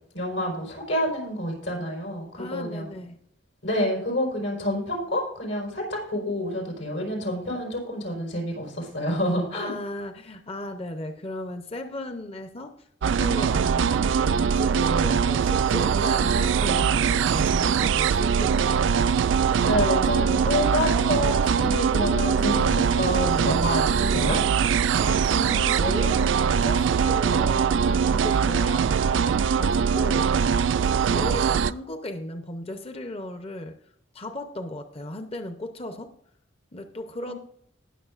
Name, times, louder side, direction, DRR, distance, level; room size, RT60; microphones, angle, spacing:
voice 1, 0.1-2.9 3.6-9.7 19.6-24.4 37.2-37.4, left 1 dB, 85° left, -1 dB, 4.7 m, -28 dB
voice 2, 2.4-3.2 9.5-12.7 13.0-18.8 25.0-30.3 31.0-33.8 34.1-36.1 36.7-37.3, left 1 dB, 30° left, 7 dB, 0.7 m, -36 dB
sound 1, 13.0-31.7, right 6 dB, 80° right, 0.3 m, -22 dB
19.5 x 6.9 x 2.5 m, 0.71 s
head